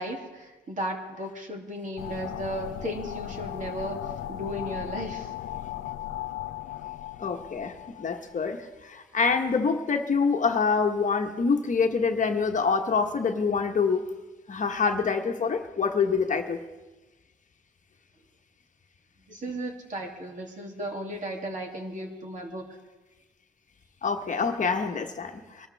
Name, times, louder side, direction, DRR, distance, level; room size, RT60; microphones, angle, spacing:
voice 1, 0.0-5.3 19.3-22.6, equal, 40° right, 1 dB, 2.8 m, -35 dB
sound 1, 2.0-8.4, left 12 dB, 80° left, 0.7 m, -37 dB
voice 2, 7.2-14.0 14.5-16.6 24.0-25.7, left 5 dB, 40° left, 4 dB, 1.3 m, -26 dB
23.5 x 13.0 x 3.5 m, 1.2 s
cardioid pair, 90°, 20 cm